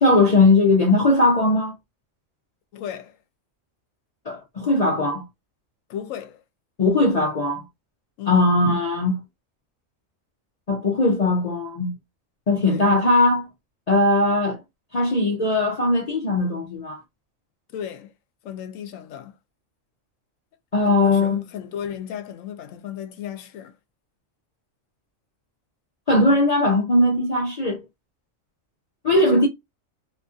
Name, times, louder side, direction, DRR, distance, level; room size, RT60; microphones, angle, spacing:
voice 1, 0.0-1.7 4.3-5.3 6.8-7.6 8.3-9.2 10.7-11.9 12.5-13.5 13.9-14.6 14.9-17.0 20.7-21.4 26.1-27.8 29.0-29.5, left 2 dB, 60° left, 0.4 m, -19 dB
voice 2, 2.7-3.2 5.9-6.4 8.2-8.5 12.6-13.0 17.7-18.1 18.4-19.3 20.8-23.7 29.2-29.5, left 9 dB, 80° left, 1.0 m, -35 dB
2.8 x 2.6 x 2.3 m
omnidirectional pair, 1.4 m